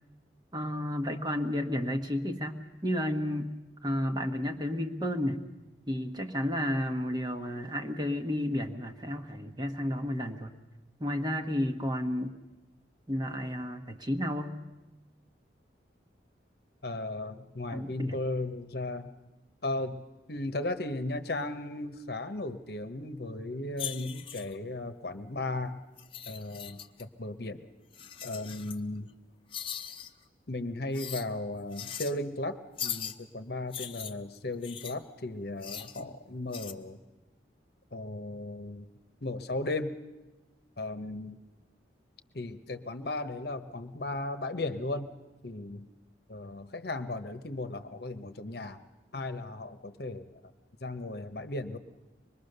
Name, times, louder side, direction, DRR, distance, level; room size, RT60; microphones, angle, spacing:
voice 1, 0.5-3.5 3.8-5.5 5.9-10.5 11.0-12.3 13.1-14.5 17.7-18.2 36.0-36.2, left 1 dB, 25° right, 5 dB, 1.2 m, -32 dB
voice 2, 16.8-19.1 19.6-20.0 20.3-25.8 26.3-27.6 28.2-29.1 30.5-37.0 37.9-38.9 39.2-39.9 40.8-41.4 42.3-45.1 45.4-45.9 46.3-48.8 49.1-50.3 50.8-51.8, left 2 dB, 60° left, 9 dB, 1.0 m, -36 dB
sound 1, 23.8-24.6 26.0-27.0 27.9-28.8 29.5-30.1 30.9-31.3 31.7-32.1 32.8-33.2 33.7-35.0 35.6-36.0 36.5-36.7, left 9 dB, 30° left, 0.9 m, -40 dB
25.0 x 21.0 x 6.7 m, 1.1 s
head